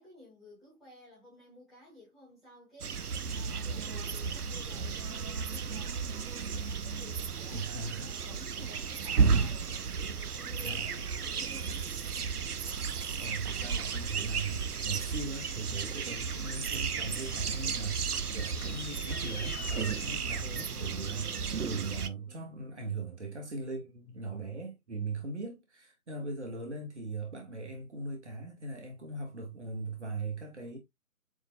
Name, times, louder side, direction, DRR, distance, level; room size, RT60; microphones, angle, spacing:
voice 1, 0.0-2.9 3.3-7.7 8.0-9.6 10.0-11.9, left 1 dB, ahead, 2.0 m, -53 dB
sound 1, 2.8-22.1, right 6 dB, 90° right, 0.6 m, -33 dB
voice 2, 7.5-8.1 10.6-11.0 13.2-30.8, right 3 dB, 50° right, 1.6 m, -39 dB
sound 2, 13.0-23.6, left 7 dB, 70° left, 0.6 m, -50 dB
7.2 x 3.3 x 2.2 m
figure-of-eight pair, 155°, 44 cm